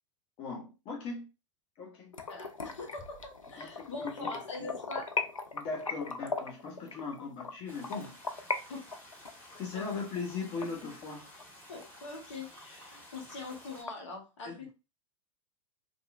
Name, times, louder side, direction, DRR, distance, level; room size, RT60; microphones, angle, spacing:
voice 1, 0.4-1.3 1.8-2.1 3.6-4.7 5.5-8.1 8.6-8.7 9.6-11.3 14.4-14.7, left 4 dB, 35° left, 0.6 m, -39 dB
sound 1, 2.1-8.6 8.9-11.4 11.8-11.9 12.3-12.4 12.8-12.9 13.2-13.9, left 4 dB, 90° left, 0.4 m, -38 dB
voice 2, 2.3-5.1 8.7-9.0 11.7-14.7, left 3 dB, 65° left, 1.0 m, -43 dB
sound 2, 3.0-4.6, equal, 10° right, 0.6 m, -58 dB
sound 3, 7.7-13.8, left 1 dB, 10° left, 1.5 m, -53 dB
2.7 x 2.4 x 2.4 m
figure-of-eight pair, 95°, 17 cm